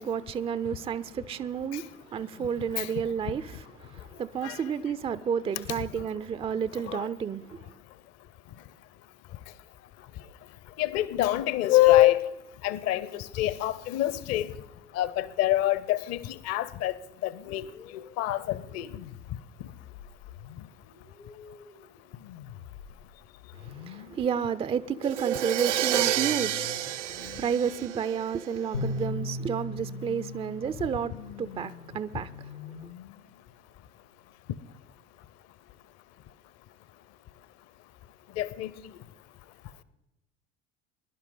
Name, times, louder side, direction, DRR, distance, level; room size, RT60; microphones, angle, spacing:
voice 1, 0.0-7.7 23.5-32.9, right 7 dB, 15° right, 0.5 m, -31 dB
voice 2, 10.8-12.2 12.6-14.5 14.9-16.9 17.2-17.7 17.9-18.9 38.4-38.7, left 15 dB, 45° left, 0.8 m, -25 dB
sound 1, 17.3-33.4, left 9 dB, 65° left, 1.4 m, -48 dB
Crash cymbal, 25.0-28.8, right 11 dB, 75° right, 0.6 m, -29 dB
sound 2, 28.7-32.0, left 1 dB, 90° left, 2.3 m, -36 dB
21.5 x 11.5 x 3.9 m
figure-of-eight pair, 70°, 36 cm